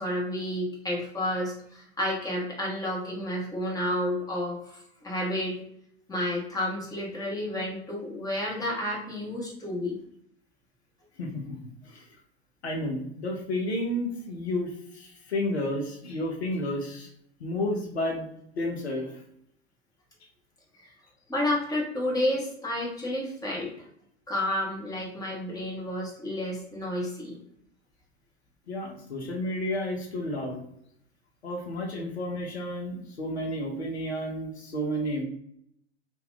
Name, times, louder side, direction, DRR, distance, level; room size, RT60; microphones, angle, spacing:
voice 1, 0.0-5.6 6.1-10.0 20.8-20.9 21.3-23.7 24.3-27.4, left 1 dB, 10° left, -4 dB, 1.3 m, -30 dB
voice 2, 11.2-12.1 12.6-17.1 17.4-19.2 28.7-30.6 31.4-35.2, left 1 dB, 75° left, 0 dB, 0.7 m, -31 dB
2.7 x 2.6 x 3.7 m, 0.73 s
figure-of-eight pair, 80°, 33 cm